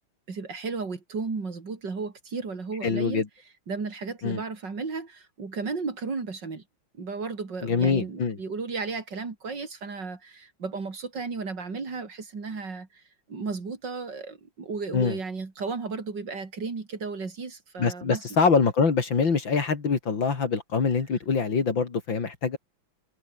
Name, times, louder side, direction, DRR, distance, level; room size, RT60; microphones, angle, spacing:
voice 1, 0.3-3.2 3.7-6.6 7.0-13.0 13.3-18.3, right 4 dB, 55° right, 3.9 m, -34 dB
voice 2, 2.8-3.3 4.2-4.4 7.6-8.4 14.9-15.2 17.8-22.6, left 5 dB, 65° left, 3.4 m, -24 dB
omnidirectional pair, 2.2 m